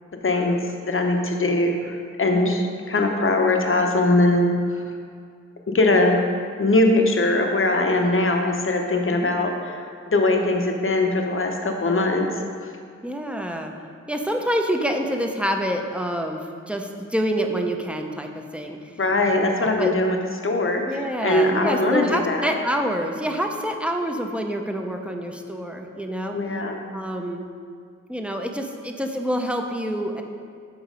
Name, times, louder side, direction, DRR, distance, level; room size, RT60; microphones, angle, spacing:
voice 1, 0.2-4.5 4.7-4.8 5.7-6.2 6.6-12.3 19.0-20.2 20.4-22.6 26.3-26.8, left 2 dB, 45° left, 3 dB, 0.8 m, -21 dB
voice 2, 13.0-13.7 14.1-18.9 19.5-19.9 20.9-26.4 26.9-27.5 28.1-30.2, equal, 5° right, 3 dB, 0.6 m, -27 dB
7.4 x 4.6 x 5.0 m, 2.2 s
wide cardioid pair, 70°, 30 cm